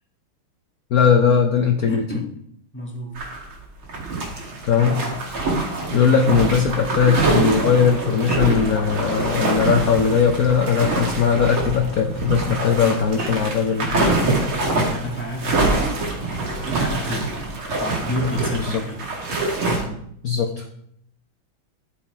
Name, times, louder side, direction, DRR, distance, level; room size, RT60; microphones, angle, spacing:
voice 1, 0.9-2.0 4.6-5.0 5.9-14.3 18.5-18.8 20.2-20.7, left 6 dB, 55° left, 4 dB, 1.1 m, -19 dB
voice 2, 1.9-2.3 2.7-3.1 5.9-6.3 12.8-13.1 14.7-19.0 19.7-20.1, equal, 5° left, 0 dB, 1.3 m, -31 dB
sound 1, 3.2-3.5 3.8-19.8, right 3 dB, 80° right, 2.9 m, -25 dB
11.5 x 6.8 x 4.5 m, 0.70 s
omnidirectional pair, 2.3 m